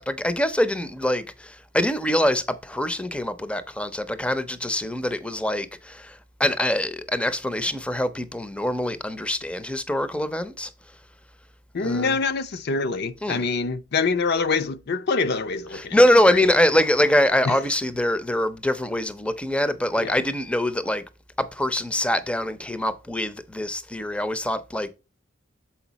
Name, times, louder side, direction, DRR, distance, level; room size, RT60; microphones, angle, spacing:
voice 1, 0.0-10.7 11.8-12.2 13.2-13.4 15.7-21.0 21.4-24.9, left 1 dB, 5° left, 0.5 m, -24 dB
voice 2, 11.7-16.0 16.3-16.4 17.4-17.6 20.0-20.1, left 4 dB, 55° left, 0.5 m, -25 dB
7.1 x 4.7 x 4.0 m
head